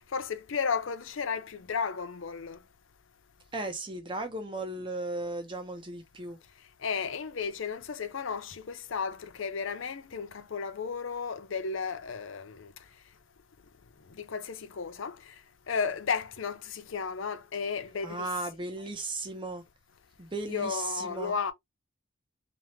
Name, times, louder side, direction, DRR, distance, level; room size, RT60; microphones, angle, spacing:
voice 1, 0.1-2.6 6.8-12.7 14.2-15.3 15.7-18.3 20.5-21.5, left 5 dB, 65° left, 0.5 m, -33 dB
voice 2, 3.5-6.4 18.0-19.6 20.2-21.3, right 2 dB, 25° right, 0.8 m, -36 dB
3.5 x 3.0 x 3.1 m
head